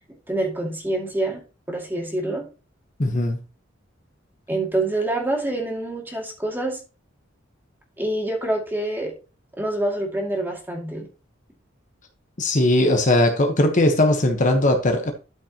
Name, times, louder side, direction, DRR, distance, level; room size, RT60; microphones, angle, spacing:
voice 1, 0.3-1.4 1.7-2.4 4.5-6.8 8.0-9.1 9.6-11.1, right 1 dB, 10° right, 2.4 m, -26 dB
voice 2, 3.0-3.4 12.4-15.1, left 1 dB, 40° left, 1.1 m, -19 dB
12.5 x 5.4 x 2.9 m
head